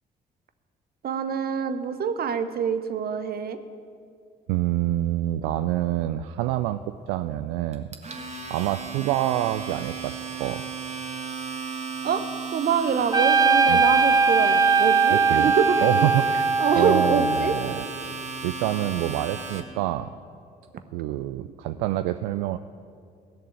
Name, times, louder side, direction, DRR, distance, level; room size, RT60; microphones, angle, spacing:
voice 1, 1.0-3.6 12.0-12.3 12.5-15.8 16.6-17.5, right 7 dB, 50° right, 10 dB, 0.9 m, -25 dB
voice 2, 4.5-10.6 13.7-13.8 15.1-15.5 15.8-17.9 18.4-20.1 20.9-22.6, right 14 dB, 70° right, 10 dB, 0.4 m, -27 dB
Domestic sounds home sounds, 7.7-19.6, right 4 dB, 35° right, 1.6 m, -35 dB
Trumpet, 13.1-17.8, right 4 dB, 20° right, 0.7 m, -20 dB
16.5 x 6.7 x 8.8 m, 2.3 s
figure-of-eight pair, 45°, 20 cm